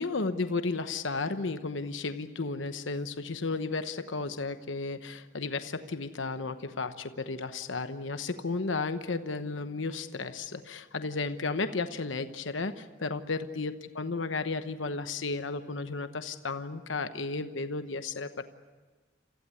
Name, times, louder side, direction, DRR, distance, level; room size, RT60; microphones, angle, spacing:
voice 1, 0.0-18.4, left 3 dB, 80° left, 9 dB, 1.0 m, -33 dB
28.0 x 15.5 x 9.8 m, 1.3 s
head